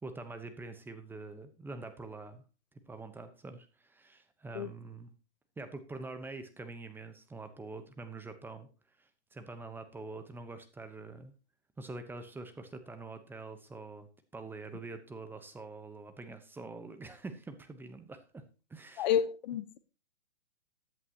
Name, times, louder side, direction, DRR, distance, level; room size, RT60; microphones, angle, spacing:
voice 1, 0.0-2.4 2.9-5.1 5.6-8.7 9.0-11.3 11.8-14.1 14.3-18.4 18.7-19.1, right 3 dB, 5° right, 0.9 m, -45 dB
voice 2, 19.0-19.8, left 9 dB, 40° left, 0.8 m, -30 dB
15.0 x 10.5 x 2.9 m
hypercardioid pair, 140°, 35 cm